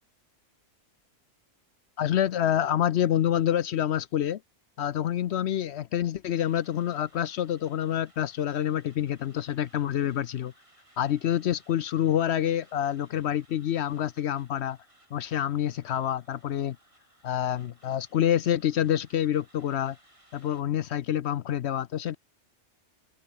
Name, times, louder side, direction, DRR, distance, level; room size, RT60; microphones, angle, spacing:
voice 1, 2.0-4.4 4.8-10.5 11.0-14.8 15.1-16.8 17.2-20.0 20.3-22.2, left 10 dB, 65° left, 0.8 m, -27 dB
sound 1, 6.2-20.6, right 1 dB, 25° right, 5.1 m, -61 dB
open air
omnidirectional pair, 1.3 m